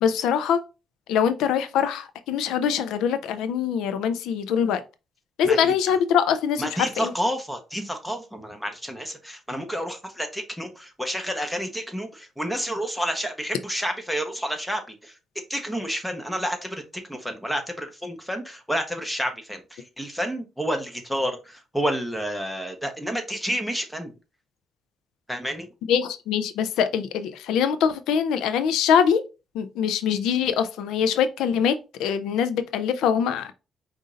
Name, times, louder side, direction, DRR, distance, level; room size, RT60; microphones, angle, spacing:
voice 1, 0.0-0.6 1.1-4.8 5.4-7.1 25.9-29.2 29.5-33.5, left 8 dB, 90° left, 0.6 m, -23 dB
voice 2, 6.6-15.2 15.5-24.1 25.3-25.7, equal, 5° left, 1.2 m, -30 dB
5.1 x 2.7 x 3.7 m
cardioid pair, 90°, 0 cm